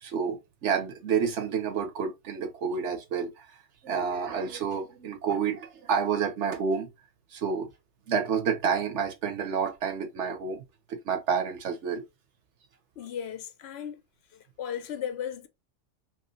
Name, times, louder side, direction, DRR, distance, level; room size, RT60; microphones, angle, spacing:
voice 1, 0.0-3.5 3.8-6.9 7.3-7.7 8.1-10.6 10.9-12.0, right 6 dB, 70° right, 1.1 m, -29 dB
voice 2, 13.0-14.0 14.3-15.5, left 9 dB, 65° left, 0.7 m, -36 dB
3.0 x 3.0 x 2.7 m
omnidirectional pair, 1.3 m